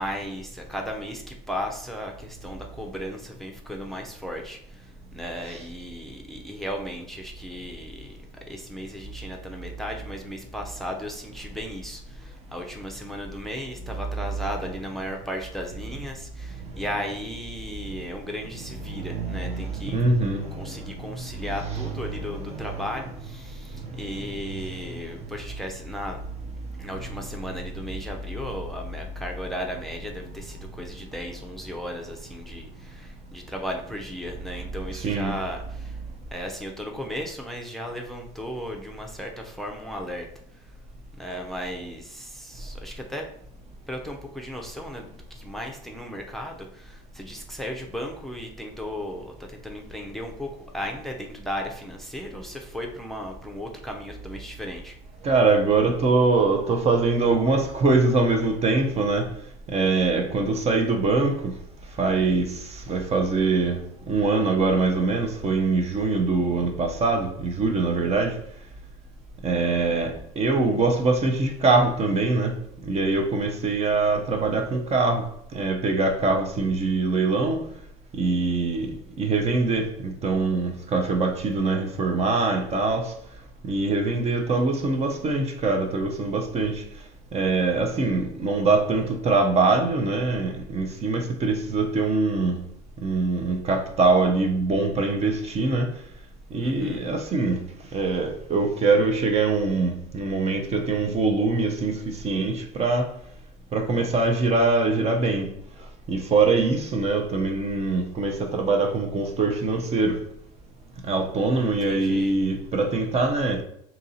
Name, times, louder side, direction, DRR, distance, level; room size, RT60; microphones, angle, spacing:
voice 1, 0.0-8.2 8.5-20.0 20.5-26.2 26.8-36.0 36.3-40.3 41.2-43.3 43.9-55.0 96.6-97.0 111.8-112.3, equal, ahead, 0.6 m, -35 dB
voice 2, 18.9-20.8 22.5-22.7 35.0-35.3 55.2-59.3 59.7-61.5 62.0-62.5 62.9-63.8 64.1-68.3 69.4-72.5 72.8-75.2 75.5-77.6 78.1-78.9 79.2-83.1 83.6-86.8 87.3-92.6 93.0-95.9 96.5-97.6 97.9-103.1 103.7-105.5 106.1-110.2 111.1-113.6, right 3 dB, 35° right, 0.7 m, -23 dB
2.8 x 2.6 x 4.1 m
supercardioid pair, 90°, 18 cm